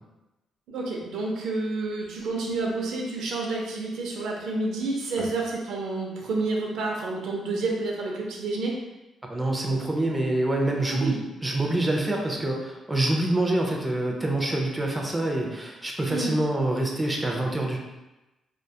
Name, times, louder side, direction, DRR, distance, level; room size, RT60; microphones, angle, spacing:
voice 1, 0.7-8.8 10.9-11.2 16.1-16.3, right 3 dB, 85° right, -1 dB, 0.5 m, -29 dB
voice 2, 9.3-17.8, right 1 dB, 15° right, 0 dB, 0.4 m, -26 dB
2.3 x 2.2 x 2.7 m, 1.0 s
cardioid pair, 120°, 0 cm